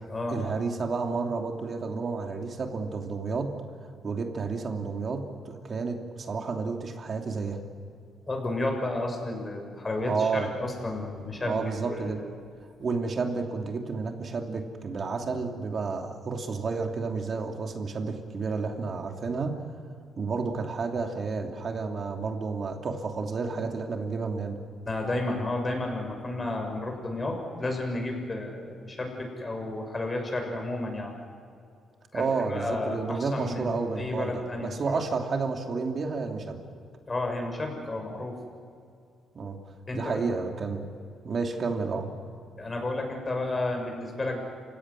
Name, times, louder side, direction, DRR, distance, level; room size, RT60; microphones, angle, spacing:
voice 1, 0.3-3.5 4.0-7.6 10.1-10.5 11.4-12.2 12.8-19.6 20.2-24.6 32.1-36.6 39.3-39.6 39.9-40.9 41.2-42.1, right 4 dB, 45° right, 4 dB, 2.9 m, -31 dB
voice 2, 8.3-12.3 24.9-31.1 32.1-35.0 37.1-38.4 39.9-40.2 42.6-44.4, left 2 dB, 25° left, 2 dB, 6.8 m, -32 dB
28.0 x 17.0 x 10.0 m, 2.4 s
cardioid pair, 90°, 0 cm